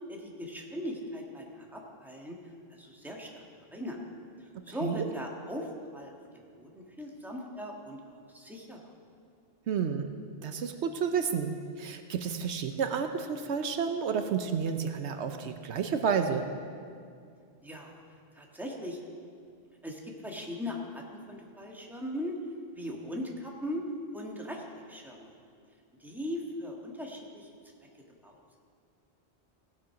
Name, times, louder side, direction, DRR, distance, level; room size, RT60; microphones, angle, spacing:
voice 1, 0.1-2.4 2.8-3.4 3.7-4.0 4.7-6.1 6.6-8.8 17.6-18.0 18.4-19.0 19.8-22.4 22.7-23.9 24.1-24.6 24.9-25.4 26.0-27.5 28.2-28.4, left 1 dB, ahead, -1 dB, 1.5 m, -39 dB
voice 2, 9.7-10.1 10.4-11.5 11.8-16.4, right 6 dB, 75° right, 7 dB, 1.0 m, -30 dB
17.5 x 7.5 x 5.7 m, 2.3 s
omnidirectional pair, 1.2 m